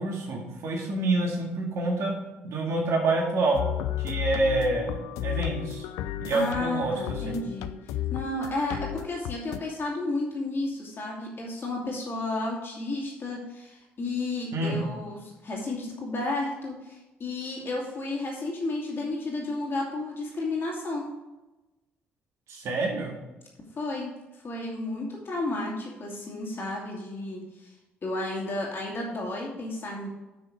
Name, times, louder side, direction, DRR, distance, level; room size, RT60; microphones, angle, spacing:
voice 1, 0.0-2.1 2.4-3.7 4.0-5.9 6.2-6.9 7.2-7.4 14.5-14.9 22.5-23.1, right 2 dB, 55° right, -1 dB, 2.1 m, -27 dB
sound 1, 3.5-9.6, left 12 dB, 65° left, 0.4 m, -33 dB
voice 2, 6.3-21.1 23.8-24.1 24.4-27.7 28.0-30.1, left 2 dB, 40° left, -2 dB, 2.6 m, -32 dB
9.0 x 6.2 x 5.1 m, 1.1 s
figure-of-eight pair, 45°, 6 cm